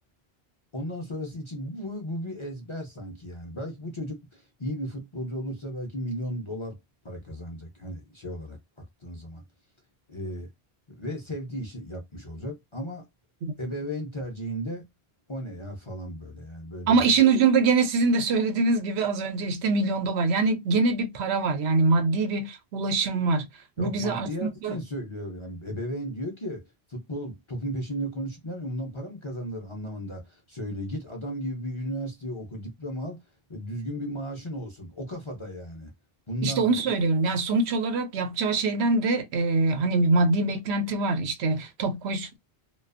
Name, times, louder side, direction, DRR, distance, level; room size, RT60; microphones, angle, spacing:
voice 1, 0.7-6.8 7.0-9.4 10.1-10.5 10.9-13.0 13.6-14.8 15.3-17.1 23.8-26.6 26.9-33.2 33.5-35.9 36.3-36.8, equal, 35° left, 0.5 m, -35 dB
voice 2, 16.9-23.5 23.8-24.3 24.6-24.8 36.4-42.4, right 3 dB, 80° right, 0.8 m, -24 dB
2.4 x 2.2 x 2.4 m
omnidirectional pair, 1.1 m